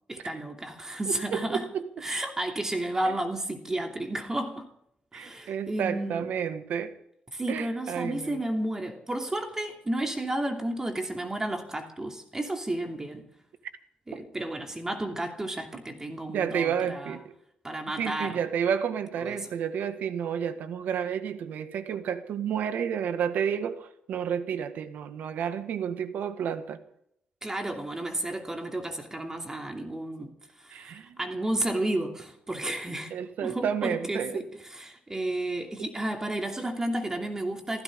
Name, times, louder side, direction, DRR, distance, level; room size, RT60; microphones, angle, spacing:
voice 1, 0.1-1.7 2.0-4.7 5.1-6.2 7.3-13.3 14.1-17.1 17.6-18.4 19.2-19.4 27.4-30.3 30.6-33.1 33.4-34.4 34.7-37.8, right 1 dB, 20° right, 2.7 m, -32 dB
voice 2, 1.1-1.9 3.1-3.2 5.1-7.0 7.5-8.4 14.1-14.2 16.3-17.3 17.9-26.8 30.7-31.2 33.1-34.5 35.8-35.9, right 8 dB, 85° right, 1.7 m, -31 dB
24.5 x 15.5 x 3.7 m
cardioid pair, 105°, 3 cm